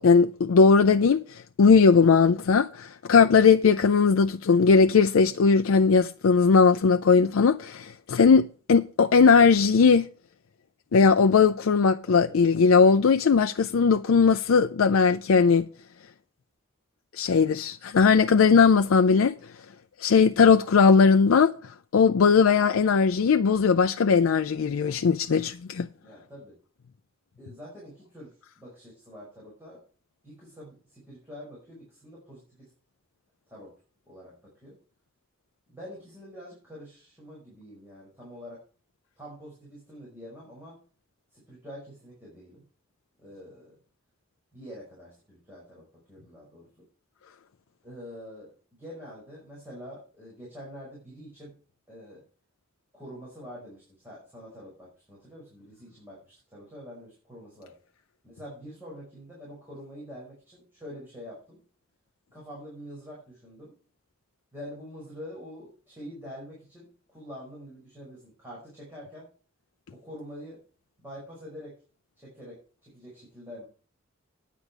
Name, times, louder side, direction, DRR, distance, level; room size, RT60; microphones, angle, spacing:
voice 1, 0.0-10.1 10.9-15.7 17.1-19.3 20.0-21.5 21.9-25.9, left 5 dB, 80° left, 0.4 m, -19 dB
voice 2, 26.0-26.6 27.4-29.8 30.2-32.7 33.5-33.7 34.1-34.8 35.7-38.6 39.2-40.8 41.3-42.6 43.2-43.8 44.5-46.9 47.8-48.5 48.8-51.5 51.9-52.2 52.9-57.7 58.2-61.6 62.3-63.7 64.5-69.3 69.9-70.6 71.0-71.7 72.2-73.6, equal, 10° right, 5.2 m, -45 dB
9.8 x 9.3 x 4.8 m
head